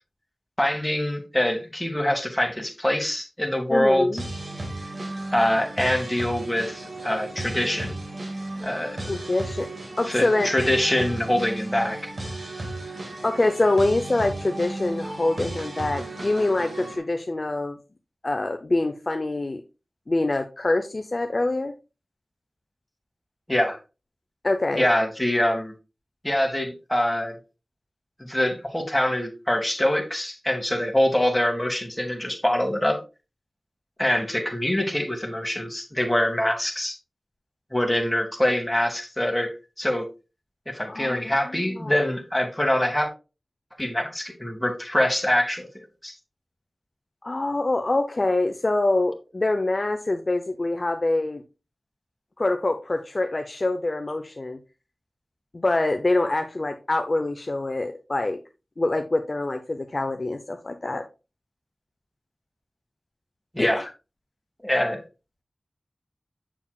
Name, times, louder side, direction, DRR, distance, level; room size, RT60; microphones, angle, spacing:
voice 1, 0.6-4.1 5.3-7.9 8.6-9.0 10.1-12.1 23.5-23.8 24.7-25.7 26.2-27.3 28.3-33.0 34.0-37.0 37.7-39.5 39.8-40.1 40.7-43.1 43.8-46.1 63.5-63.8 64.6-65.0, left 1 dB, 10° left, 3 dB, 1.9 m, -24 dB
voice 2, 3.7-4.3 9.1-9.7 10.0-10.5 13.2-17.8 18.2-19.6 20.1-21.7 24.4-24.9 40.9-42.1 47.2-51.4 52.4-54.6 55.5-58.4 58.8-61.0 63.6-63.7, left 2 dB, 50° left, 6 dB, 0.6 m, -25 dB
sound 1, 4.2-17.0, right 2 dB, 60° right, 1.9 m, -35 dB
7.1 x 7.1 x 2.4 m, 0.30 s
wide cardioid pair, 55°, 0 cm